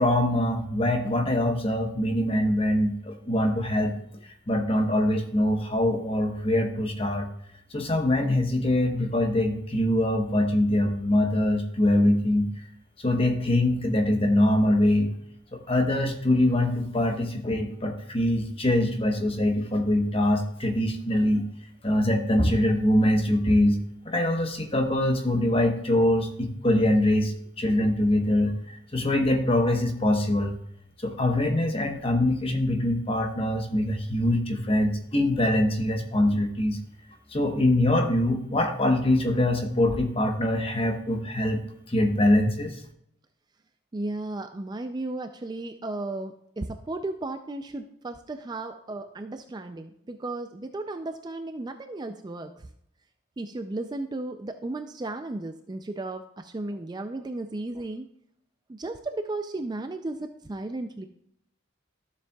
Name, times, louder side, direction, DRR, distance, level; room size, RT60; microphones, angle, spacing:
voice 1, 0.0-3.9 4.5-7.3 7.7-12.5 13.0-15.1 15.5-21.4 21.8-23.8 24.0-30.5 31.0-36.8 37.3-41.6 41.9-42.8, left 1 dB, 25° left, 4 dB, 1.0 m, -23 dB
voice 2, 43.9-52.7 53.4-58.1 58.7-61.1, right 2 dB, 20° right, 7 dB, 0.3 m, -34 dB
13.0 x 7.2 x 2.3 m, 0.73 s
head